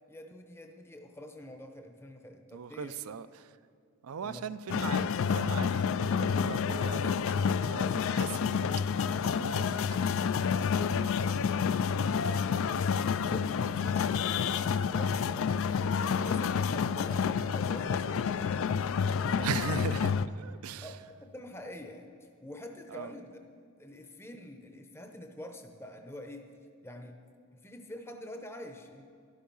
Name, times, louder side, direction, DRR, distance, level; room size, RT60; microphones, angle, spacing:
voice 1, 0.1-3.2 4.2-4.5 5.0-5.1 11.7-12.6 13.1-15.6 16.1-18.5 19.0-19.8 20.8-23.4 23.8-26.5 26.8-27.2 27.6-29.0, left 1 dB, 10° left, 0.7 m, -46 dB
voice 2, 2.5-3.6 4.0-10.2 19.4-21.0 22.9-23.1, right 6 dB, 75° right, 0.5 m, -40 dB
sound 1, 4.7-20.3, left 6 dB, 65° left, 0.4 m, -29 dB
12.0 x 11.5 x 5.4 m
head